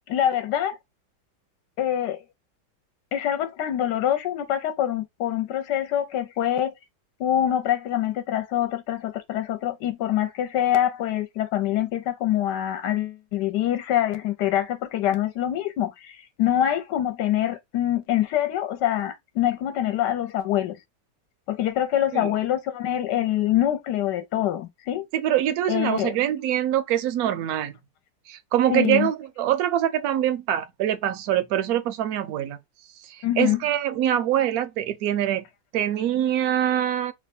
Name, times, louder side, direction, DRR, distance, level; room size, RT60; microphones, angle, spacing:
voice 1, 0.1-0.8 1.8-2.2 3.1-6.7 7.2-20.8 21.5-25.1 25.7-26.1 28.7-29.1 33.2-33.6, left 11 dB, 70° left, 1.2 m, -25 dB
voice 2, 25.1-27.7 28.3-32.6 33.0-35.4 35.7-37.1, right 11 dB, 70° right, 0.9 m, -24 dB
3.1 x 2.2 x 4.1 m
omnidirectional pair, 2.0 m